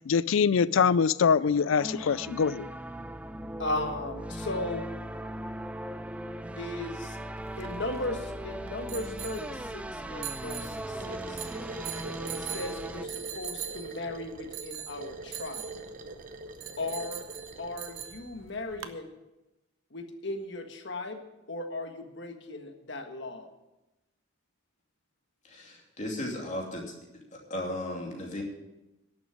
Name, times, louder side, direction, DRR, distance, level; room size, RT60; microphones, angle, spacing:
voice 1, 0.1-2.7, left 6 dB, 75° left, 19 dB, 0.4 m, -24 dB
sound 1, 1.7-13.1, right 1 dB, 5° right, 0.4 m, -39 dB
voice 2, 3.6-4.9 6.6-7.2 7.6-10.8 11.0-11.4 12.3-15.7 16.8-17.3 17.6-19.1 19.9-21.2 21.5-23.5, left 2 dB, 55° left, 6 dB, 1.5 m, -36 dB
sound 2, 7.4-19.0, right 9 dB, 75° right, 0.9 m, -43 dB
sound 3, 11.0-18.1, right 3 dB, 40° right, 0.8 m, -43 dB
voice 3, 25.5-26.8 27.5-28.4, left 1 dB, 35° left, 0 dB, 2.7 m, -35 dB
11.5 x 7.2 x 9.7 m, 0.98 s
head